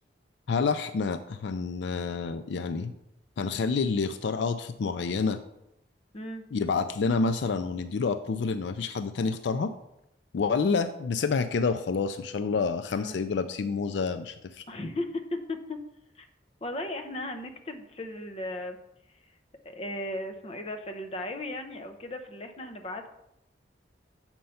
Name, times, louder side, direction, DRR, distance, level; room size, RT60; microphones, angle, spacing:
voice 1, 0.5-2.9 3.4-5.4 6.5-9.7 10.3-14.6, left 4 dB, 70° left, 11 dB, 0.4 m, -28 dB
voice 2, 14.7-15.1 15.7-15.8 16.1-16.3 16.6-18.8 19.6-23.1, left 1 dB, 30° left, 5 dB, 0.6 m, -36 dB
6.4 x 4.5 x 5.6 m, 0.82 s
head